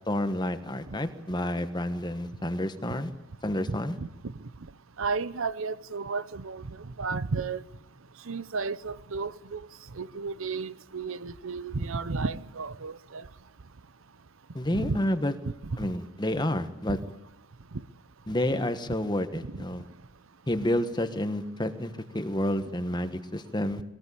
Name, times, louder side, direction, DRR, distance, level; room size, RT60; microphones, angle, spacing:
voice 1, 0.1-3.1 3.4-4.0 14.5-15.3 15.8-17.0 18.3-19.8 20.5-23.8, left 1 dB, 20° left, 1.3 m, -29 dB
voice 2, 3.7-4.3 5.0-7.6 8.3-9.6 10.0-13.3 14.7-15.0 16.9-17.0, right 4 dB, 60° right, 0.7 m, -33 dB
21.0 x 18.5 x 8.5 m
head